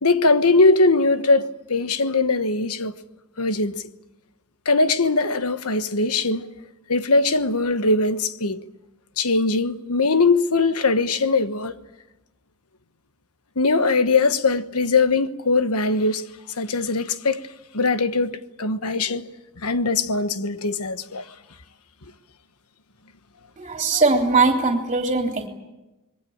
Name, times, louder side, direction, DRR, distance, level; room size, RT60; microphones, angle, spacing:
voice 1, 0.0-2.9 3.4-3.8 4.6-6.5 6.9-8.6 9.2-11.8 13.6-16.2 16.6-17.4 17.7-19.3 19.6-21.3, left 3 dB, 75° left, 1.3 m, -21 dB
voice 2, 23.6-25.5, right 3 dB, 30° right, 3.2 m, -20 dB
27.5 x 22.0 x 8.7 m
head